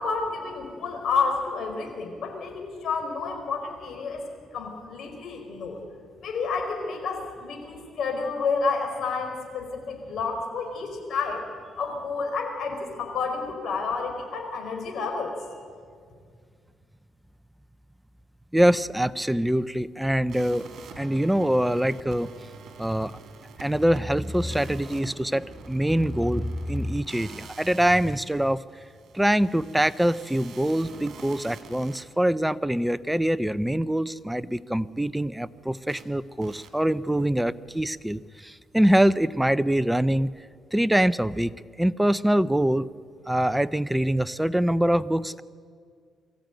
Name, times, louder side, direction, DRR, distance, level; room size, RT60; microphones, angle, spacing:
voice 1, 0.0-4.2 4.5-5.8 6.2-11.4 11.8-15.4, left 4 dB, 65° left, 3 dB, 4.6 m, -30 dB
voice 2, 18.5-20.6 21.0-22.3 22.8-23.1 23.6-28.6 29.1-40.3 40.7-42.9 43.3-45.4, right 1 dB, 5° right, 15 dB, 0.6 m, -24 dB
sound 1, 20.3-32.0 35.9-36.0 36.4-36.7, right 5 dB, 65° right, 2.8 m, -46 dB
23.0 x 14.5 x 9.1 m, 2.1 s
cardioid pair, 90°, 0 cm